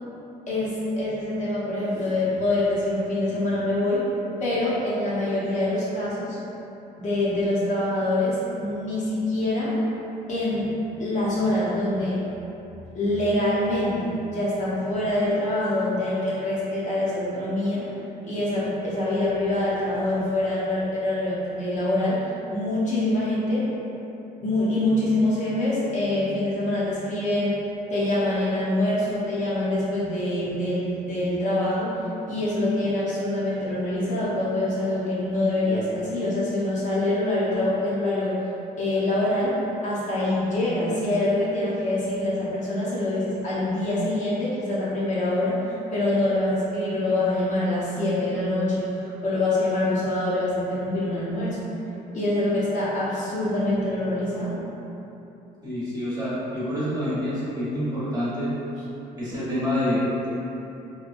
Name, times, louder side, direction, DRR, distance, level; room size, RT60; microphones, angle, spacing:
voice 1, 0.5-4.1 4.4-6.4 7.0-9.7 10.3-10.7 11.0-12.2 12.9-17.9 18.2-22.2 22.5-23.7 24.4-27.6 27.9-32.0 32.3-38.4 38.8-51.7 52.1-54.6, left 1 dB, 45° left, -8 dB, 0.7 m, -25 dB
voice 2, 55.6-58.5 59.2-60.3, left 1 dB, 20° right, -10 dB, 1.0 m, -27 dB
2.8 x 2.2 x 2.5 m, 3.0 s
cardioid pair, 110°, 17 cm